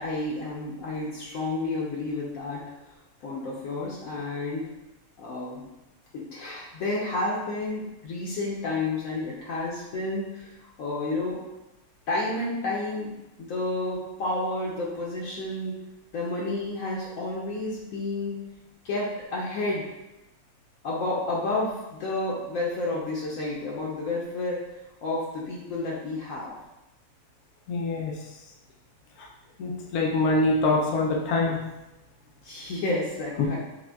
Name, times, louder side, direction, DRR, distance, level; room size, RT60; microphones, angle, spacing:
voice 1, 0.0-2.6 3.2-4.6 5.2-5.7 6.1-10.5 10.8-11.4 12.1-13.1 13.4-15.7 16.1-18.4 18.8-19.8 20.8-24.6 25.0-26.5 32.4-33.6, left 2 dB, 75° left, -4 dB, 1.0 m, -30 dB
voice 2, 27.7-28.1 29.6-31.6, left 2 dB, 90° left, -1 dB, 1.1 m, -24 dB
5.8 x 2.1 x 2.3 m, 0.96 s
omnidirectional pair, 1.5 m